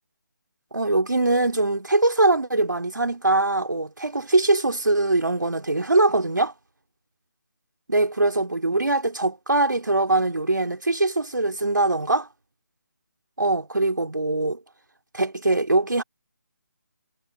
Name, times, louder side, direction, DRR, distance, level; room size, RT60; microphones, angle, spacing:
voice 1, 0.7-6.5 7.9-12.3 13.4-14.6 15.1-16.0, right 2 dB, 85° right, 2.8 m, -22 dB
figure-of-eight pair, 155°, 10 cm